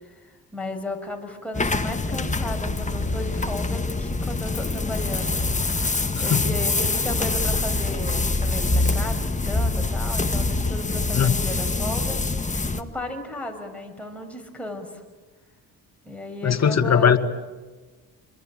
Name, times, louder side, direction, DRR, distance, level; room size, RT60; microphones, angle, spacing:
voice 1, 0.0-14.9 16.1-17.2, left 1 dB, 5° left, 2 dB, 6.9 m, -35 dB
sound 1, 1.5-12.8, left 3 dB, 20° left, 1.6 m, -25 dB
voice 2, 16.4-17.2, left 7 dB, 45° left, 8 dB, 2.1 m, -19 dB
28.0 x 22.5 x 9.1 m, 1.3 s
cardioid pair, 80°, 37 cm